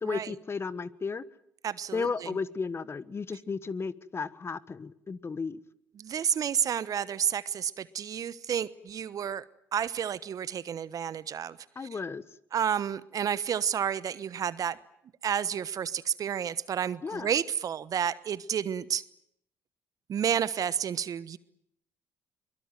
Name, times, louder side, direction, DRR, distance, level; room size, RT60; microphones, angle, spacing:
voice 1, 0.0-1.2 1.9-5.6 11.7-12.2 17.0-17.3, left 5 dB, 35° left, 17 dB, 1.3 m, -34 dB
voice 2, 1.6-2.4 6.0-9.4 9.7-11.6 12.5-14.8 15.2-19.0 20.1-21.4, right 8 dB, 55° right, 17 dB, 1.1 m, -30 dB
23.0 x 22.0 x 9.3 m, 0.73 s
hypercardioid pair, 55°, 7 cm